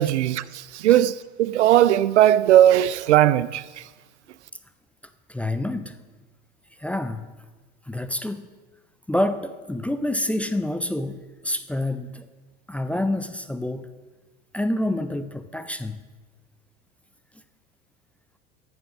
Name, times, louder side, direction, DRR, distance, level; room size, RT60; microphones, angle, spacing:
voice 1, 0.0-3.6, right 12 dB, 75° right, 0.5 m, -18 dB
voice 2, 5.3-6.0 6.8-7.3 7.9-8.5 9.1-12.3 12.7-13.9 14.5-16.0, left 1 dB, 5° left, 0.4 m, -27 dB
9.2 x 9.0 x 6.4 m
hypercardioid pair, 80°, 35 cm